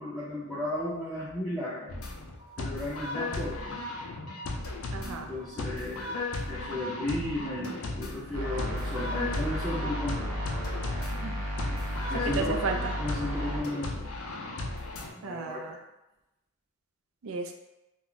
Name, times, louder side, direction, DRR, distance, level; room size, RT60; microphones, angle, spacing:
voice 1, 0.0-1.9 2.6-3.8 5.0-6.2 6.5-10.3 12.1-12.6 13.0-14.1 14.3-14.5 15.1-15.8, left 1 dB, ahead, -10 dB, 0.5 m, -35 dB
sound 1, 1.9-15.1, left 2 dB, 75° left, 0.5 m, -36 dB
voice 2, 4.9-5.3 11.1-11.8 12.3-12.9 15.2-15.8 17.2-17.5, right 4 dB, 65° right, 4 dB, 0.4 m, -34 dB
sound 2, 8.3-13.6, equal, 85° right, 0.8 m, -33 dB
2.5 x 2.3 x 3.7 m, 0.94 s
head